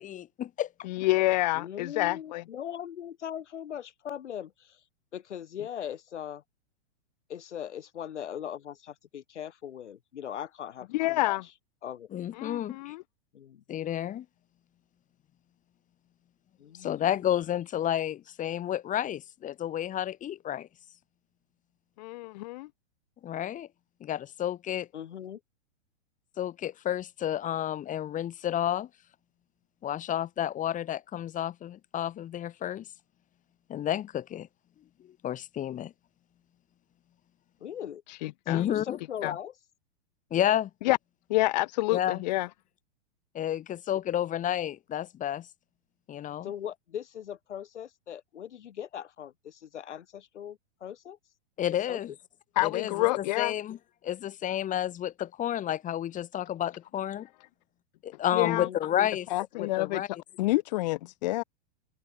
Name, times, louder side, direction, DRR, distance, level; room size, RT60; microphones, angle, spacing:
voice 1, 0.0-0.7 12.1-12.9 13.7-14.3 16.7-20.7 23.2-23.7 24.0-24.9 26.4-28.9 29.8-32.9 33.7-34.5 35.0-35.9 38.5-39.0 40.3-40.7 41.9-42.2 43.3-45.5 46.1-46.5 51.6-52.1 52.6-53.8 54.0-57.3 58.0-59.3 59.6-60.1, left 11 dB, 20° left, 5.6 m, -31 dB
voice 2, 0.9-2.4 10.9-11.4 12.4-13.0 22.0-22.7 38.1-38.6 39.2-39.3 40.8-41.0 41.3-42.5 52.6-53.5 58.3-58.7 59.3-60.0 60.4-61.4, left 19 dB, 40° left, 0.5 m, -28 dB
voice 3, 1.5-4.8 5.1-6.4 7.3-11.3 11.8-12.1 13.3-13.6 16.6-17.1 24.9-25.4 37.6-38.0 38.5-39.5 46.4-51.2 51.9-52.0 58.4-58.8, left 9 dB, 90° left, 3.0 m, -40 dB
open air
hypercardioid pair, 145°, 34 cm